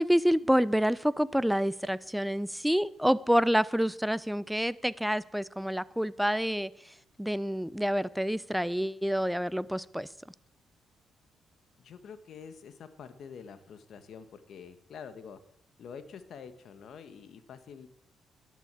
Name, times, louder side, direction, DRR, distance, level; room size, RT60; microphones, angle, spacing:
voice 1, 0.0-10.1, equal, ahead, 0.6 m, -28 dB
voice 2, 11.8-15.4 15.8-17.9, left 6 dB, 65° left, 1.4 m, -47 dB
11.0 x 11.0 x 8.2 m
cardioid pair, 90°, 0 cm